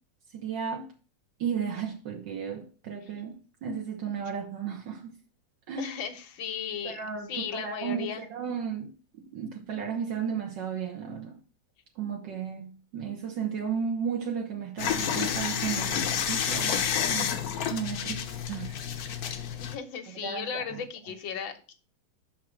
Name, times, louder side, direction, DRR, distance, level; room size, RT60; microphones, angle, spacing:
voice 1, 0.3-0.9 1.4-3.3 3.6-5.1 5.7-6.0 6.8-8.9 9.3-11.4 12.0-16.8 17.1-17.3 17.7-18.8 19.0-19.4 20.2-20.8, right 7 dB, 70° right, 1.6 m, -34 dB
voice 2, 5.8-7.0 7.3-8.2 19.6-21.7, left 7 dB, 85° left, 1.7 m, -36 dB
sound 1, 14.8-19.8, left 8 dB, 60° left, 1.1 m, -29 dB
6.3 x 4.7 x 6.1 m
omnidirectional pair, 2.1 m